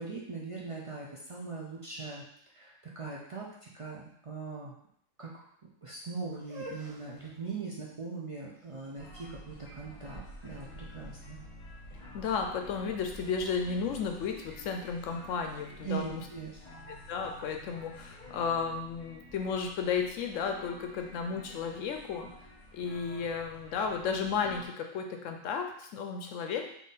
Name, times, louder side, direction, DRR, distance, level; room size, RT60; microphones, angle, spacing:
voice 1, 0.0-2.2 2.5-4.7 5.2-5.5 5.8-11.5 15.8-16.6, right 4 dB, 50° right, -4 dB, 0.4 m, -40 dB
sound 1, 6.3-12.3, right 2 dB, 75° right, 1.6 m, -51 dB
sound 2, 9.0-24.7, left 1 dB, 35° left, 0.9 m, -50 dB
voice 2, 12.1-16.2 17.1-22.3 22.7-26.6, left 6 dB, 75° left, 4 dB, 0.9 m, -33 dB
3.7 x 2.7 x 4.0 m, 0.69 s
omnidirectional pair, 1.4 m